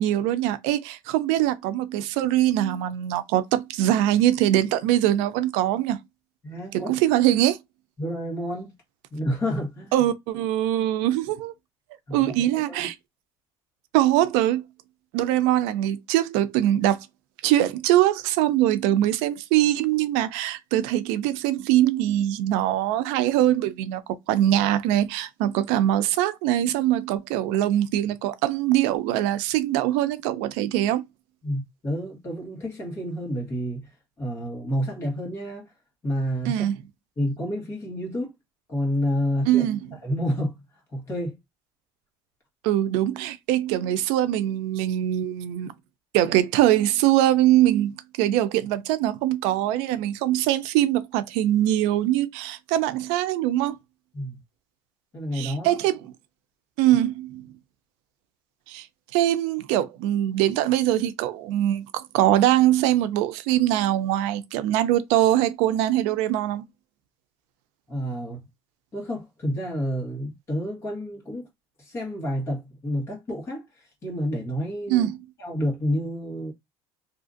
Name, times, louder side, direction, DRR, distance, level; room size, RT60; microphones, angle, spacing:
voice 1, 0.0-6.0 6.7-7.6 9.9-11.5 12.1-12.9 13.9-14.6 15.1-17.0 17.4-24.0 24.3-31.0 36.5-36.7 39.5-39.9 42.6-45.7 46.1-53.8 55.3-56.0 56.8-57.5 58.7-58.9 59.1-66.6 74.9-75.2, right 13 dB, 85° right, 0.4 m, -22 dB
voice 2, 6.4-6.9 8.0-8.7 9.1-10.1 12.1-12.9 31.4-35.7 36.0-36.7 37.2-38.3 38.7-39.6 40.0-40.6 40.9-41.4 54.1-54.4 55.1-55.9 67.9-68.4 68.9-71.5 71.8-75.1 75.4-76.5, equal, 25° left, 1.3 m, -29 dB
2.7 x 2.4 x 2.5 m
cardioid pair, 165°, 11 cm